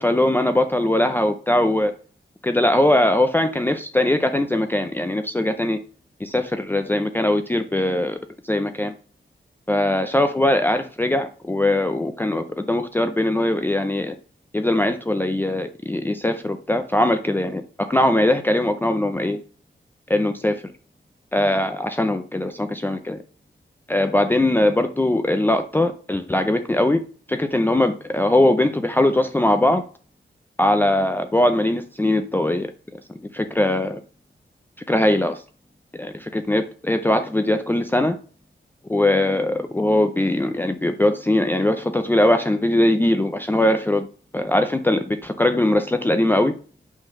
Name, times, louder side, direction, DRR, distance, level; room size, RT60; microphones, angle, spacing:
voice 1, 0.0-1.9 2.4-5.8 6.2-8.2 8.4-8.9 9.7-14.2 14.5-19.4 20.1-20.7 21.3-23.2 23.9-27.0 27.3-29.8 30.6-32.7 33.3-34.0 34.9-35.4 36.0-38.2 38.9-44.1 44.3-46.5, left 1 dB, 10° left, 7 dB, 0.5 m, -21 dB
8.9 x 3.8 x 6.5 m, 0.42 s
wide cardioid pair, 145°, 21 cm